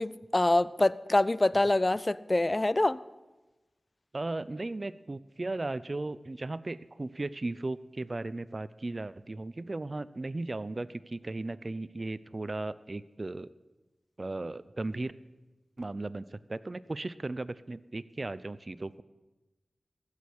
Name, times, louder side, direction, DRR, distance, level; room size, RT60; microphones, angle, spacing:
voice 1, 0.0-3.0, left 2 dB, 35° left, 19 dB, 0.5 m, -25 dB
voice 2, 4.1-13.5 14.2-15.1 15.8-19.0, right 2 dB, 45° right, 16 dB, 0.6 m, -36 dB
15.5 x 6.5 x 9.5 m, 1.1 s
cardioid pair, 45°, 0 cm